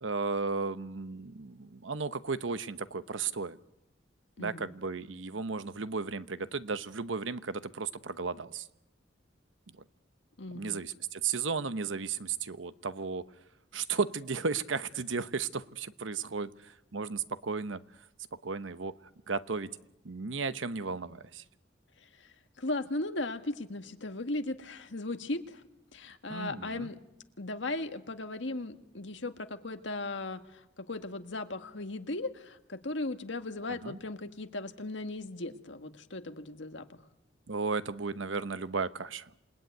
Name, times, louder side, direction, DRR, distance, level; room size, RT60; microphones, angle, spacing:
voice 1, 0.0-3.6 4.4-8.7 10.5-13.3 13.7-17.8 18.4-18.9 19.3-19.7 20.0-21.4 26.3-26.9 33.7-34.0 37.5-39.3, right 4 dB, 85° right, 13 dB, 1.0 m, -34 dB
voice 2, 4.4-4.7 10.4-10.8 22.0-25.6 25.9-27.0 27.4-37.0, left 2 dB, 70° left, 7 dB, 1.7 m, -37 dB
27.5 x 19.5 x 9.4 m, 0.88 s
head